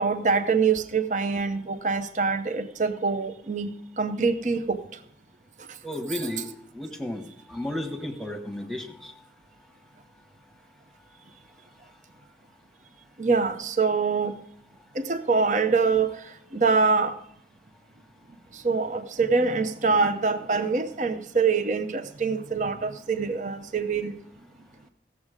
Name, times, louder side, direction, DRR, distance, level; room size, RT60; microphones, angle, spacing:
voice 1, 0.0-4.8 13.2-14.3 15.0-16.1 16.5-17.2 18.6-24.1, right 4 dB, 40° right, 9 dB, 0.7 m, -24 dB
voice 2, 5.8-7.2 7.5-9.1, left 1 dB, ahead, 6 dB, 1.1 m, -33 dB
16.5 x 7.3 x 5.0 m, 0.68 s
head